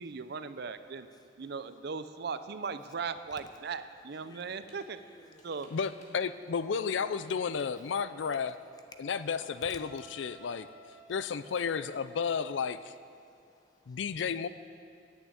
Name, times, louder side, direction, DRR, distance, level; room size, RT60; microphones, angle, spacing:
voice 1, 0.0-1.1 1.4-5.0 5.4-5.8, right 5 dB, 60° right, 11 dB, 0.5 m, -38 dB
voice 2, 1.1-1.5 4.2-5.5 9.0-9.1 9.7-9.8 11.0-11.1 13.2-14.0, left 2 dB, 20° left, 6 dB, 0.8 m, -58 dB
sound 1, 4.7-4.8 5.2-6.3 6.6-8.1 8.4-8.5 8.7-8.8 9.0-9.6, left 2 dB, 40° left, 2.2 m, -60 dB
voice 3, 5.7-8.6 9.0-10.7 11.1-12.9 13.9-14.5, left 6 dB, 75° left, 14 dB, 0.4 m, -32 dB
Wind instrument woodwind instrument, 8.0-12.0, right 1 dB, 5° left, 3.1 m, -56 dB
10.0 x 8.8 x 8.4 m, 2.3 s
head